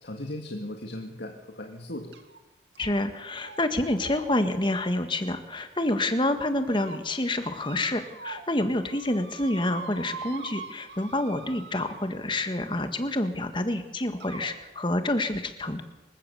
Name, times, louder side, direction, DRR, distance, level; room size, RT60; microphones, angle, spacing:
voice 1, 0.0-2.1, left 1 dB, 70° left, 3 dB, 2.0 m, -37 dB
sound 1, 2.1-2.4 2.8-3.1 3.4-3.6 4.0-5.9 6.4-7.0 7.6-8.6 8.8-12.4 13.4-13.5 14.2-14.5, right 3 dB, 75° right, 2.4 m, -43 dB
voice 2, 2.8-15.8, left 1 dB, 25° left, 8 dB, 1.7 m, -28 dB
26.5 x 16.0 x 7.0 m, 1.1 s
head